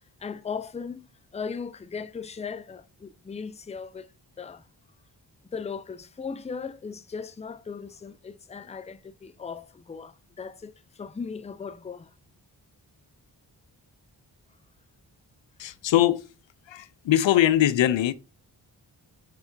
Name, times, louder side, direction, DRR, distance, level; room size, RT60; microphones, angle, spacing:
voice 1, 0.2-1.0 1.3-4.1 4.4-4.7 5.5-12.1, left 5 dB, 15° left, 0.5 m, -37 dB
voice 2, 15.6-16.2 16.7-18.1, left 12 dB, 75° left, 0.5 m, -22 dB
4.6 x 4.1 x 2.6 m
cardioid pair, 40°, 45 cm